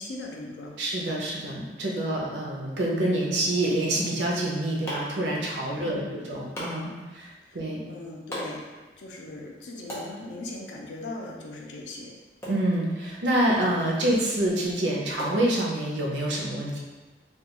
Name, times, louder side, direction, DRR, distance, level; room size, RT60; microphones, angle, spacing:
voice 1, 0.0-0.8 5.7-6.2 7.4-7.6 7.8-8.7 9.0-12.1, left 2 dB, 85° left, -1 dB, 0.4 m, -39 dB
voice 2, 0.8-7.8 12.5-16.8, right 1 dB, 85° right, -3 dB, 0.6 m, -27 dB
sound 1, 4.2-16.1, equal, 15° left, 0.6 m, -43 dB
2.3 x 2.2 x 2.8 m, 1.2 s
head